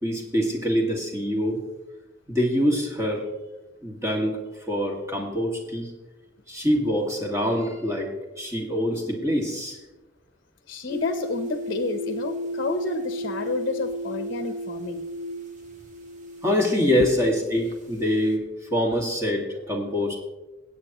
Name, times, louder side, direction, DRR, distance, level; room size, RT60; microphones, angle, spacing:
voice 1, 0.0-1.6 2.3-3.3 3.8-4.4 4.7-5.9 6.5-9.8 16.4-18.4 18.7-20.2, equal, 15° right, -1 dB, 2.1 m, -25 dB
voice 2, 10.7-15.1 17.0-17.1, left 3 dB, 50° left, 7 dB, 0.8 m, -30 dB
sound 1, 10.9-18.4, equal, 40° right, 1.5 m, -34 dB
20.5 x 8.7 x 3.0 m, 1.1 s
head